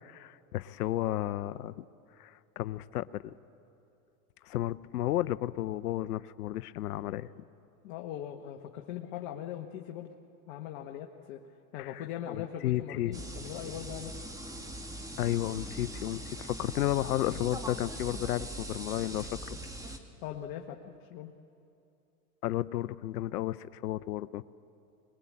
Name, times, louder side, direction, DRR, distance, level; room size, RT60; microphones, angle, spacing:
voice 1, 0.0-1.8 2.2-3.3 4.5-7.4 11.8-13.2 15.2-19.6 22.4-24.4, left 14 dB, 90° left, 16 dB, 0.7 m, -33 dB
voice 2, 7.8-10.2 10.5-11.4 11.7-14.2 20.2-21.3, left 10 dB, 55° left, 3 dB, 1.4 m, -40 dB
sound 1, 13.1-20.0, right 1 dB, 5° right, 1.6 m, -41 dB
22.0 x 21.0 x 8.6 m, 2.7 s
hypercardioid pair, 115°, 45 cm